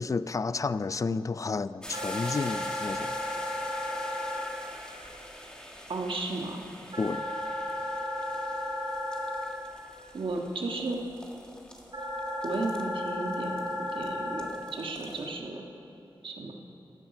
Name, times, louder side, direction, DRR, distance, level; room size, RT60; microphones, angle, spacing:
voice 1, 0.0-3.1 7.0-7.2, left 4 dB, 40° left, 0.3 m, -31 dB
sound 1, 1.8-15.3, equal, 10° left, 1.5 m, -46 dB
sound 2, 1.9-4.4 6.9-9.4 11.9-14.4, left 1 dB, 55° right, 2.1 m, -34 dB
voice 2, 5.9-6.6 10.1-11.0 12.4-13.6 13.9-15.6 16.2-16.5, right 2 dB, 75° right, 1.4 m, -34 dB
15.0 x 10.0 x 5.9 m
wide cardioid pair, 105°, 9 cm